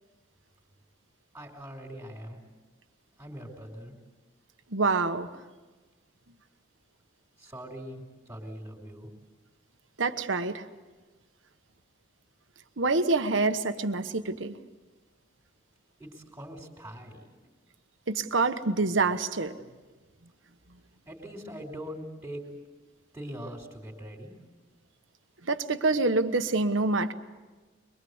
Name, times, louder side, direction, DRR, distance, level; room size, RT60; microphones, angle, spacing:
voice 1, 1.3-2.4 3.2-4.0 7.4-9.1 16.0-17.3 21.1-22.4 23.1-24.3, equal, 15° right, -2 dB, 3.4 m, -42 dB
voice 2, 4.7-5.3 10.0-10.6 12.8-14.6 18.1-19.5 25.4-27.1, right 3 dB, 75° right, 9 dB, 1.2 m, -26 dB
23.5 x 22.5 x 8.0 m, 1.3 s
head